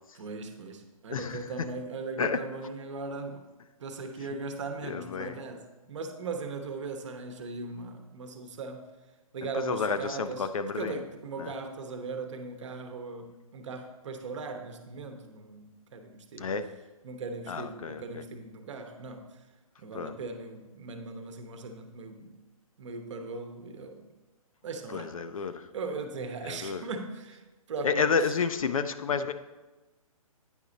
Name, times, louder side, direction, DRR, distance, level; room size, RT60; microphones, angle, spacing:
voice 1, 0.1-3.5 3.8-8.9 9.3-10.5 10.7-16.5 17.0-19.4 19.8-22.4 22.8-24.1 24.6-25.5 25.7-28.1, right 3 dB, 55° right, 6 dB, 0.9 m, -39 dB
voice 2, 4.8-5.4 9.5-11.0 11.4-11.5 16.4-16.7 17.5-18.2 19.9-20.2 24.9-25.7 26.4-26.8 27.8-29.3, left 5 dB, 65° left, 10 dB, 0.6 m, -30 dB
9.1 x 4.9 x 3.9 m, 1.1 s
figure-of-eight pair, 135°, 19 cm